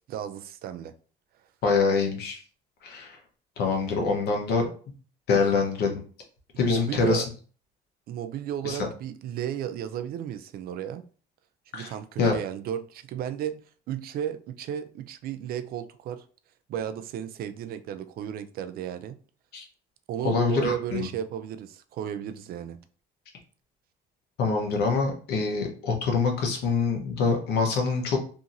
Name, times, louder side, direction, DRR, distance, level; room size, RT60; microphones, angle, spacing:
voice 1, 0.1-0.9 6.6-7.3 8.1-11.0 11.7-16.2 16.7-19.2 20.1-22.8, right 10 dB, 60° right, 0.4 m, -34 dB
voice 2, 1.6-2.4 2.8-3.2 3.6-4.7 5.3-6.0 6.6-7.2 8.6-8.8 11.7-11.9 12.2-12.4 19.5-19.6 20.2-21.1 24.4-28.2, left 4 dB, 75° left, 0.9 m, -25 dB
2.7 x 2.7 x 2.5 m
cardioid pair, 110°, 17 cm